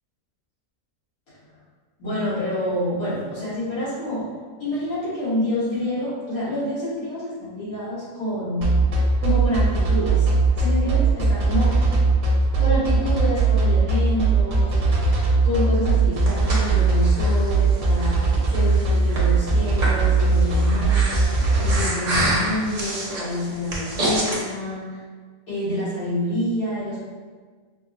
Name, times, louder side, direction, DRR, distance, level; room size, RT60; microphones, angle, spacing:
voice 1, 2.0-4.3 4.6-8.7 9.2-10.3 10.6-11.9 12.6-14.8 15.4-18.2 18.5-21.2 21.6-25.0 25.5-27.0, left 1 dB, 80° left, -12 dB, 2.1 m, -27 dB
sound 1, 8.6-21.8, right 3 dB, 75° right, 1.2 m, -19 dB
Breathing, 15.9-24.4, right 1 dB, 40° right, 0.6 m, -29 dB
5.4 x 2.1 x 2.5 m, 1.5 s
omnidirectional pair, 1.5 m